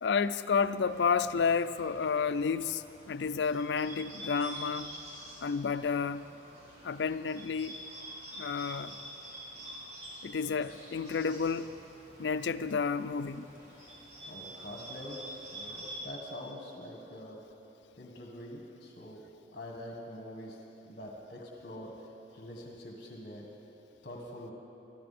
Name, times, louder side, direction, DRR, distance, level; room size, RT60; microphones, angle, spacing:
voice 1, 0.0-4.9 5.4-6.2 6.8-7.8 8.4-9.0 10.2-11.8 12.2-13.5, left 5 dB, 85° left, 0.5 m, -31 dB
Bird, 0.8-16.0, right 1 dB, 40° right, 3.9 m, -47 dB
voice 2, 13.7-14.0 14.3-17.4 18.0-19.2 19.5-20.6 20.9-23.5 24.0-24.5, left 1 dB, 50° left, 1.7 m, -45 dB
23.0 x 13.5 x 4.3 m
head